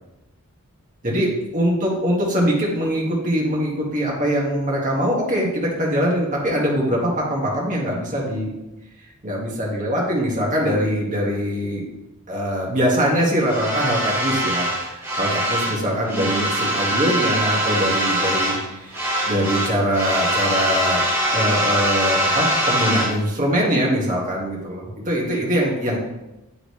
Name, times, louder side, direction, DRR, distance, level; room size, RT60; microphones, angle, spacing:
voice 1, 1.0-8.5 9.2-11.8 12.3-21.0 21.3-26.0, equal, 35° right, -3 dB, 1.7 m, -22 dB
sound 1, 13.5-15.8 16.1-18.7 18.9-23.1, right 1 dB, 10° right, 1.6 m, -22 dB
10.0 x 3.8 x 3.2 m, 0.96 s
head